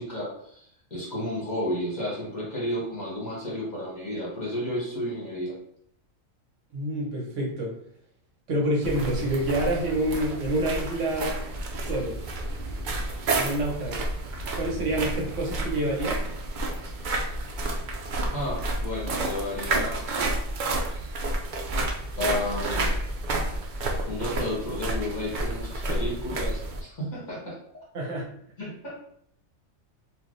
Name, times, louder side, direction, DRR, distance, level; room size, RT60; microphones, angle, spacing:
voice 1, 0.0-5.5 18.3-20.2 20.6-20.7 22.2-22.9 24.1-27.6 28.6-29.0, left 1 dB, 35° left, -7 dB, 1.0 m, -32 dB
voice 2, 6.7-7.7 8.5-11.4 11.8-12.2 13.3-14.1 14.5-16.2 27.9-28.3, right 1 dB, 65° right, -2 dB, 1.1 m, -27 dB
sound 1, 8.8-26.8, right 2 dB, 85° right, 0.4 m, -30 dB
3.2 x 2.4 x 2.5 m, 0.68 s
omnidirectional pair, 1.4 m